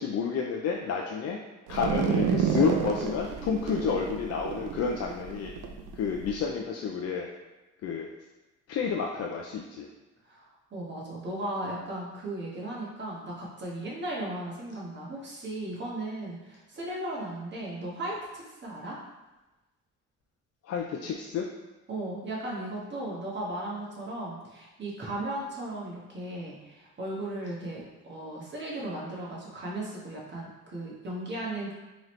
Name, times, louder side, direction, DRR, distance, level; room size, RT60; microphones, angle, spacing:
voice 1, 0.0-1.4 1.7-5.5 5.9-7.3 7.8-8.1 8.7-9.9 20.6-21.5, left 6 dB, 55° left, 1 dB, 0.4 m, -30 dB
sound 1, 1.7-6.3, right 7 dB, 85° right, 0.5 m, -30 dB
voice 2, 10.7-19.0 21.9-31.7, right 1 dB, 35° right, -4 dB, 1.3 m, -36 dB
3.7 x 3.0 x 3.2 m, 1.1 s
cardioid pair, 90°, 30 cm